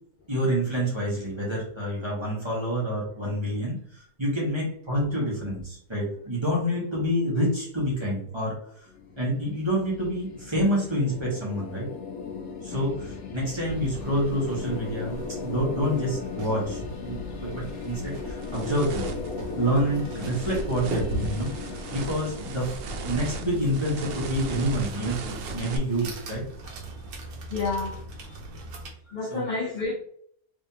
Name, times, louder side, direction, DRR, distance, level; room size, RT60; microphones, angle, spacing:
voice 1, 0.3-3.8 4.2-8.9 9.2-11.8 12.6-19.2 19.5-22.7 23.0-26.4 26.7-26.8 29.3-29.4, equal, 20° right, -5 dB, 1.4 m, -28 dB
sound 1, 8.9-23.9, left 5 dB, 80° left, 1.3 m, -38 dB
sound 2, 13.6-28.9, right 1 dB, 90° right, 1.3 m, -39 dB
sound 3, 16.9-17.1 17.6-25.8, right 4 dB, 65° right, 0.6 m, -38 dB
voice 2, 27.5-28.0 29.1-29.9, left 3 dB, 50° left, -1 dB, 0.5 m, -30 dB
3.4 x 3.3 x 2.8 m, 0.64 s
omnidirectional pair, 1.5 m